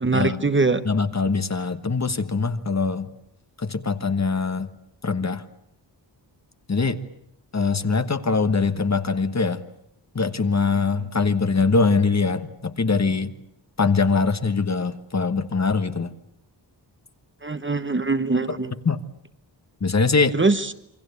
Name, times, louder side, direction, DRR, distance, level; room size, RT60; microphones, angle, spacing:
voice 1, 0.0-0.8 17.4-18.7 20.3-20.7, right 3 dB, 25° right, 11 dB, 1.1 m, -22 dB
voice 2, 0.8-3.1 3.6-4.7 5.0-5.4 6.7-7.0 7.5-9.6 10.1-13.3 13.8-16.1 18.8-19.0 19.8-20.4, left 4 dB, 35° left, 10 dB, 1.3 m, -22 dB
28.0 x 24.0 x 8.4 m, 0.74 s
wide cardioid pair, 130°, 44 cm